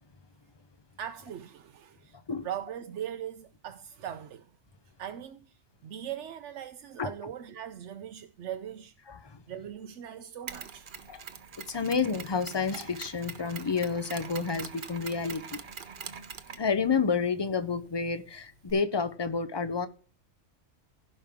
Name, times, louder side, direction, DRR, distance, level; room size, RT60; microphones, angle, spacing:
voice 1, 1.0-2.2 2.4-4.5 4.8-8.9 9.5-10.9 11.8-12.0, right 10 dB, 90° right, 1.0 m, -40 dB
voice 2, 9.1-9.4 11.1-11.2 11.7-15.6 16.6-19.9, left 5 dB, 30° left, 0.6 m, -29 dB
Mechanisms, 10.5-18.7, right 6 dB, 50° right, 0.9 m, -45 dB
16.0 x 5.4 x 3.6 m
omnidirectional pair, 1.2 m